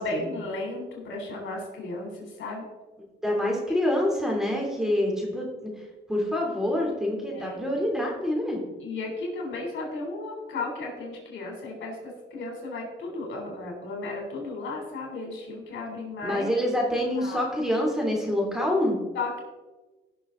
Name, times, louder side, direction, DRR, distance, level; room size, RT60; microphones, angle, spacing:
voice 1, 0.0-2.1 2.4-2.6 4.9-5.0 7.3-7.6 8.8-11.9 12.3-16.5 17.2-17.4 19.1-19.4, left 2 dB, 70° left, 0 dB, 3.7 m, -34 dB
voice 2, 3.2-5.7 6.1-8.6 16.2-19.0, left 1 dB, ahead, -1 dB, 3.2 m, -26 dB
16.5 x 6.2 x 3.9 m, 1.2 s
cardioid pair, 90°, 20 cm